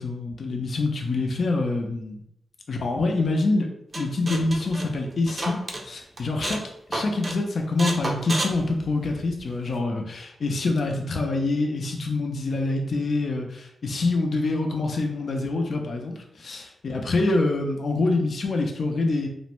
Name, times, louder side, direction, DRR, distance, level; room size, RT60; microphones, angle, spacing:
voice 1, 0.0-2.2 2.7-3.7 3.9-5.6 5.8-6.6 6.9-19.3, left 2 dB, 60° left, 2 dB, 0.5 m, -25 dB
sound 1, 3.9-5.8 6.2-6.7 6.9-7.4 7.8-9.4, right 1 dB, 35° right, 0.4 m, -31 dB
2.4 x 2.1 x 2.9 m, 0.74 s
wide cardioid pair, 95°, 0 cm